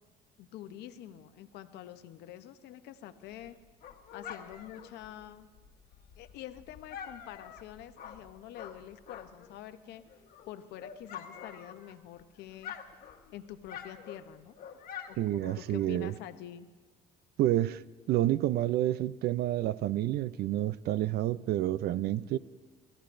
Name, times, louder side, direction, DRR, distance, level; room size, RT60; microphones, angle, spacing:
voice 1, 0.4-3.6 4.1-5.5 6.2-10.0 10.5-12.7 13.3-14.6 15.1-16.7, left 12 dB, 80° left, 0.8 m, -46 dB
Dog, 3.3-9.6 9.9-12.2 12.5-15.9, left 8 dB, 60° left, 1.3 m, -47 dB
voice 2, 15.2-16.1 17.4-22.4, right 13 dB, 70° right, 0.4 m, -29 dB
27.0 x 13.5 x 2.6 m
cardioid pair, 110°, 17 cm